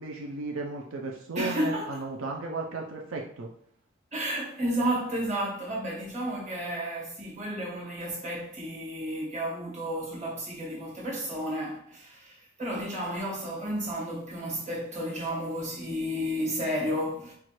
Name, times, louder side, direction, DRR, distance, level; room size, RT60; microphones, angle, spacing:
voice 1, 0.0-3.5, right 3 dB, 85° right, 0.5 m, -35 dB
voice 2, 1.3-2.0 4.1-17.3, equal, 35° right, 1.4 m, -32 dB
4.5 x 2.4 x 3.0 m
head